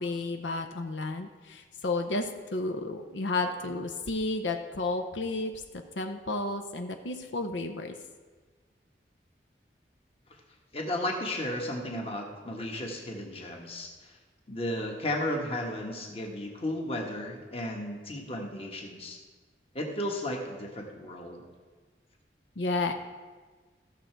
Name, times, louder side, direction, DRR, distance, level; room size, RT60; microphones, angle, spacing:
voice 1, 0.0-5.5 6.0-7.9 22.6-22.9, left 2 dB, 90° left, 6 dB, 0.7 m, -32 dB
voice 2, 10.7-14.2 14.5-19.2 19.7-21.4, left 1 dB, 30° left, 1 dB, 1.3 m, -34 dB
14.5 x 6.6 x 4.6 m, 1.4 s
head